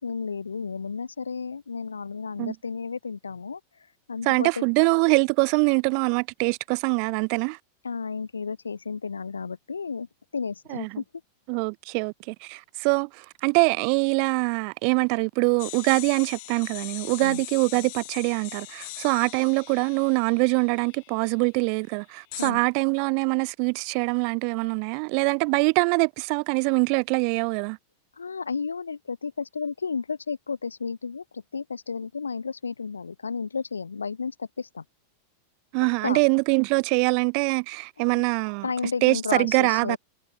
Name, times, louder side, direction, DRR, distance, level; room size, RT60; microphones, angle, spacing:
voice 1, 0.0-3.6 4.1-4.9 7.8-10.1 10.3-11.0 17.2-17.4 22.4-22.6 28.2-34.8 36.0-36.2 38.0-38.2 38.6-40.0, left 5 dB, 75° left, 5.4 m, -32 dB
voice 2, 4.3-7.6 10.7-11.0 11.5-27.8 35.7-38.7 39.0-40.0, right 40 dB or more, 45° right, 4.0 m, -24 dB
sound 1, 15.6-21.3 22.3-22.5, left 25 dB, 50° left, 7.1 m, -41 dB
figure-of-eight pair, 90°, 0 cm